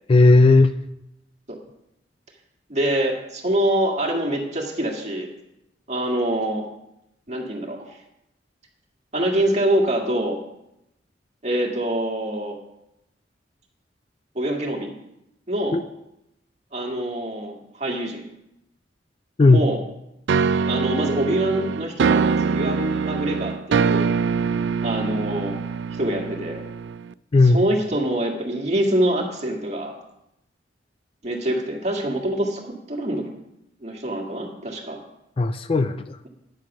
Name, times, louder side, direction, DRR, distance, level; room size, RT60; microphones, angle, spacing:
voice 1, 0.1-0.7 15.7-15.8 19.4-19.6 27.3-27.6 35.4-36.2, left 2 dB, 30° left, 11 dB, 0.4 m, -15 dB
voice 2, 2.7-5.3 5.9-6.6 7.3-8.0 9.1-10.4 11.4-12.6 14.4-14.9 15.5-15.8 16.7-18.3 19.5-19.8 20.7-24.1 24.8-25.6 26.0-26.6 27.4-30.0 31.2-33.3 33.8-35.0, right 1 dB, 40° right, 1 dB, 1.9 m, -25 dB
sound 1, 20.3-27.1, right 5 dB, 70° right, 0.3 m, -23 dB
10.0 x 7.6 x 5.9 m, 0.85 s
head